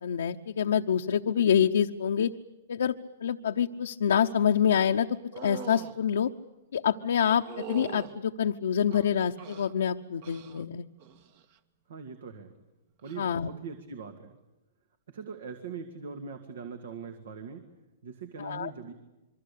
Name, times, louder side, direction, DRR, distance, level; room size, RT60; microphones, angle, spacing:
voice 1, 0.0-2.3 2.7-3.0 3.2-6.3 6.7-10.9 13.2-13.5 18.4-18.7, left 8 dB, 80° left, 4 dB, 0.8 m, -26 dB
sound 1, 5.3-6.0 7.4-8.1 8.9-9.7 10.2-10.6 11.0-11.4 13.0-13.2, right 8 dB, 55° right, 1.9 m, -42 dB
voice 2, 11.9-12.5 13.0-14.3 15.1-17.7 18.0-18.9, right 5 dB, 75° right, 8 dB, 2.3 m, -41 dB
26.5 x 23.5 x 8.5 m, 1.0 s
hypercardioid pair, 125°, 0 cm